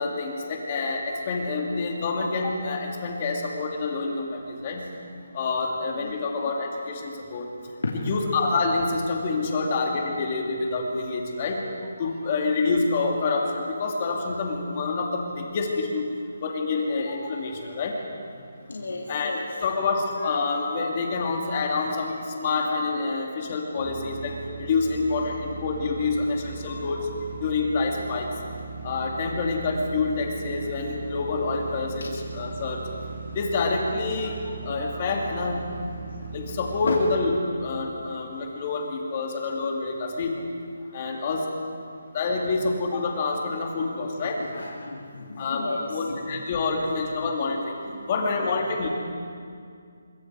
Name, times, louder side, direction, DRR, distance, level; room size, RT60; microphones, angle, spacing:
voice 1, 0.0-4.9 5.3-7.5 8.1-11.6 12.0-16.1 16.4-18.0 19.1-27.1 27.4-28.4 28.8-32.8 33.3-35.7 36.3-37.3 37.6-40.4 40.9-41.4 42.1-44.4 45.4-47.7 48.1-48.9, left 3 dB, 25° left, 1 dB, 2.5 m, -27 dB
voice 2, 18.7-19.5 24.0-24.1 36.8-37.0 43.7-44.1 44.4-46.4 47.9-48.0, left 3 dB, 85° left, -4 dB, 3.0 m, -33 dB
sound 1, 23.8-37.3, right 4 dB, 50° right, 6.8 m, -38 dB
25.0 x 22.5 x 4.7 m, 2.3 s
hypercardioid pair, 175°, 0 cm